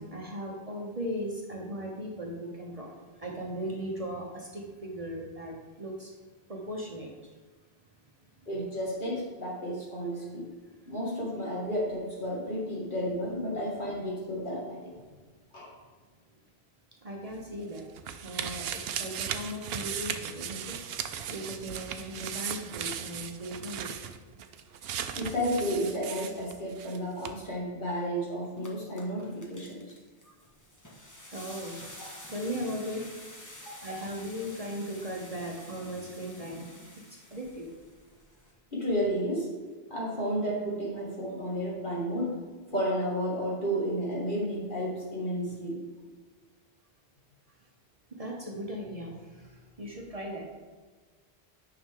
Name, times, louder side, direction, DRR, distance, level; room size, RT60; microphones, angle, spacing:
voice 1, 0.0-6.1 6.5-7.1 17.0-17.9 18.2-23.9 30.2-30.3 31.3-31.8 32.3-33.1 33.5-37.7 48.1-50.5, equal, 35° right, 0 dB, 1.0 m, -38 dB
voice 2, 8.5-10.5 10.9-14.9 15.5-15.7 25.1-29.8 32.0-32.1 33.7-33.9 38.7-39.5 39.9-42.3 42.7-45.8, equal, 50° left, -5 dB, 2.4 m, -32 dB
sound 1, 17.3-27.0 27.2-27.3, right 8 dB, 70° right, 0.8 m, -37 dB
sound 2, 28.4-38.5, left 1 dB, 20° left, 1.1 m, -49 dB
9.2 x 5.9 x 3.7 m, 1.4 s
omnidirectional pair, 1.1 m